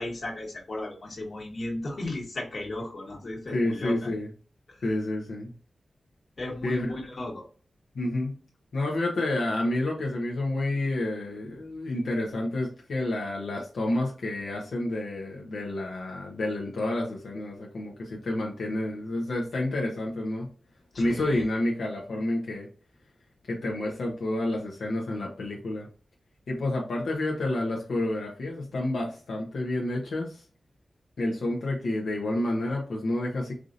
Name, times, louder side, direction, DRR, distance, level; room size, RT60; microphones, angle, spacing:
voice 1, 0.0-4.1 4.7-4.8 6.4-7.4 20.9-21.4, left 1 dB, 50° left, -2 dB, 1.6 m, -35 dB
voice 2, 3.5-4.3 4.8-5.5 6.6-7.0 7.9-8.4 8.7-20.5 21.0-22.7 23.5-25.9 26.5-30.4 31.2-33.5, left 1 dB, 85° left, -2 dB, 0.9 m, -29 dB
4.7 x 2.6 x 2.6 m, 0.39 s
wide cardioid pair, 120°, 0 cm